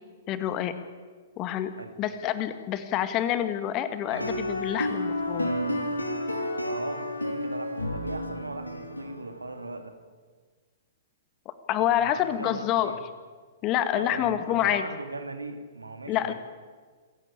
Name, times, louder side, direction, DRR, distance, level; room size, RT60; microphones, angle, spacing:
voice 1, 0.3-0.7 1.4-5.5 11.7-12.9 13.6-14.8 16.1-16.3, left 11 dB, 30° left, 11 dB, 1.8 m, -27 dB
sound 1, 4.1-9.7, left 1 dB, 80° left, 3.3 m, -31 dB
voice 2, 6.6-10.0 11.8-13.0 13.9-16.3, right 2 dB, 80° right, 8 dB, 2.6 m, -39 dB
27.0 x 15.5 x 8.5 m, 1.5 s
figure-of-eight pair, 110°, 0 cm